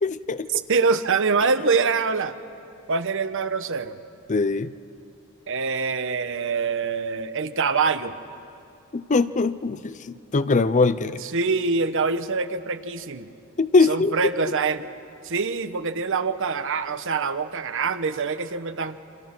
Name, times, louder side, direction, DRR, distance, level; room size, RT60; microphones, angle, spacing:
voice 1, 0.0-0.6 4.3-4.7 8.9-11.2 13.6-14.2, left 3 dB, 35° left, 14 dB, 0.6 m, -22 dB
voice 2, 0.5-2.3 2.9-4.0 5.5-8.2 11.2-13.3 13.9-14.9 15.2-19.0, right 4 dB, 60° right, 10 dB, 1.1 m, -24 dB
28.5 x 26.0 x 6.1 m, 2.9 s
head